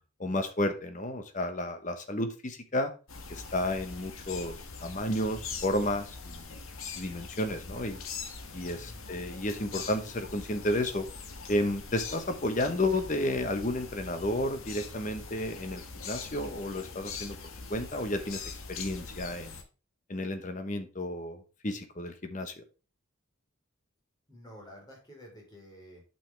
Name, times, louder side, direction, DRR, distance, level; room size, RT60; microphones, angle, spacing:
voice 1, 0.2-2.9 3.3-4.5 4.8-6.6 7.0-8.0 8.5-11.1 11.5-17.4 17.7-19.5 20.1-22.5, left 1 dB, 35° left, 8 dB, 1.0 m, -32 dB
sound 1, 3.1-19.6, left 4 dB, 70° left, 1.3 m, -43 dB
voice 2, 8.6-9.2 24.3-26.0, equal, 20° left, -2 dB, 3.6 m, -51 dB
8.6 x 5.6 x 3.4 m, 0.34 s
head